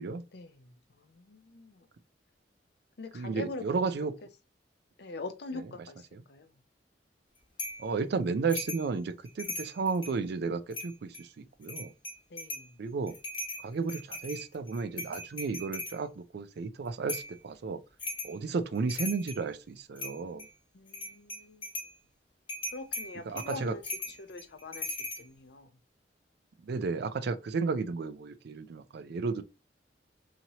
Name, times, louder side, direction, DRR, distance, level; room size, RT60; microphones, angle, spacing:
voice 1, 0.3-1.9 3.0-3.8 5.0-6.6 12.3-12.8 20.7-21.7 22.7-23.8 24.2-25.7, left 3 dB, 60° left, 0.5 m, -43 dB
voice 2, 3.1-4.2 6.1-6.2 7.8-11.9 12.8-13.2 13.6-17.8 18.2-20.5 23.3-23.7 26.6-29.4, right 4 dB, 60° right, 0.4 m, -33 dB
sound 1, 7.6-7.9 8.5-8.9 9.2-10.2 10.7-11.2 11.6-12.7 13.1-16.0 17.1-17.4 18.0-18.4 18.7-19.5 20.0-20.5 20.9-21.9 22.5-25.2, left 2 dB, 30° left, 1.0 m, -39 dB
2.8 x 2.8 x 2.7 m
head